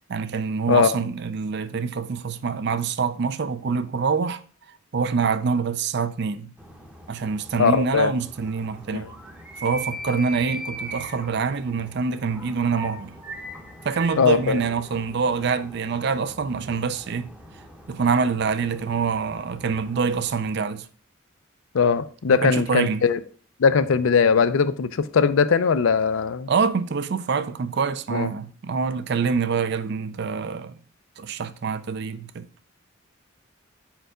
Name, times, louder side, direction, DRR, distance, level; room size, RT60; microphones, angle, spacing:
voice 1, 0.1-4.4 4.9-6.5 7.1-9.1 9.6-13.2 13.8-17.3 17.9-20.9 22.3-23.0 26.5-30.8 31.2-32.4, right 5 dB, 55° right, 0.4 m, -25 dB
sound 1, 6.6-20.5, right 1 dB, 5° right, 0.7 m, -41 dB
voice 2, 7.6-8.1 8.9-9.1 14.2-14.6 21.7-23.2 23.6-26.5 28.1-28.3, left 6 dB, 75° left, 0.4 m, -20 dB
4.5 x 4.5 x 5.0 m
head